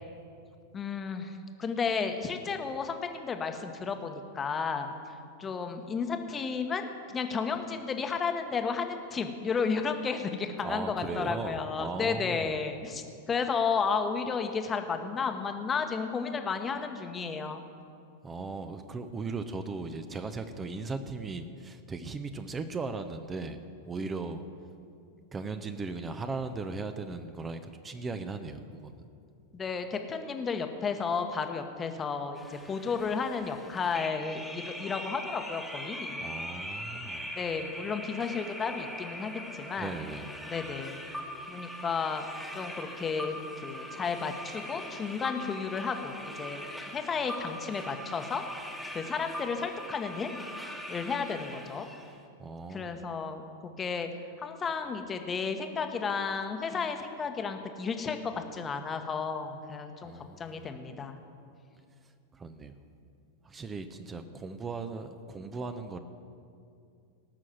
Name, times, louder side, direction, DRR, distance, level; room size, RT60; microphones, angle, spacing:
voice 1, 0.7-4.9 5.4-17.7 29.5-36.3 37.3-40.0 40.4-41.0 41.5-42.2 42.5-48.4 48.9-50.3 50.9-51.9 52.7-54.1 54.4-61.1, left 5 dB, 20° left, 6 dB, 1.1 m, -33 dB
voice 2, 10.6-12.5 18.2-24.4 25.3-28.9 36.2-37.3 39.8-40.3 52.4-53.0 60.0-60.7 62.3-62.8 63.4-66.0, right 3 dB, 20° right, 9 dB, 0.8 m, -38 dB
sound 1, 32.4-52.1, equal, ahead, 1.5 m, -41 dB
18.0 x 6.3 x 7.7 m, 2.4 s
figure-of-eight pair, 90°, 0 cm